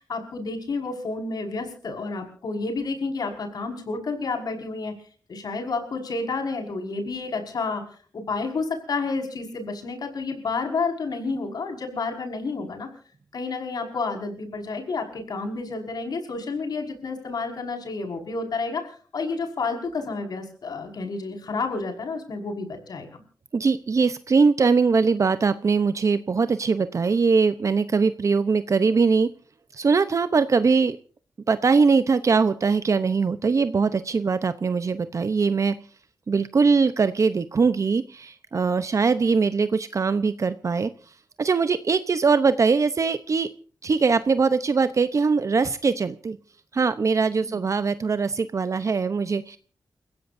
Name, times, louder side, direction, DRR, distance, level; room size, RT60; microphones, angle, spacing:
voice 1, 0.0-4.9 5.3-7.8 8.1-12.9 13.3-23.2 47.4-47.6, left 4 dB, 75° left, 4 dB, 5.4 m, -30 dB
voice 2, 23.5-29.3 29.7-31.0 31.5-35.7 36.3-40.9 41.4-43.5 43.8-46.4 46.7-49.6, right 4 dB, 50° right, 11 dB, 0.8 m, -21 dB
29.5 x 16.0 x 2.7 m, 0.43 s
wide cardioid pair, 100°, 7 cm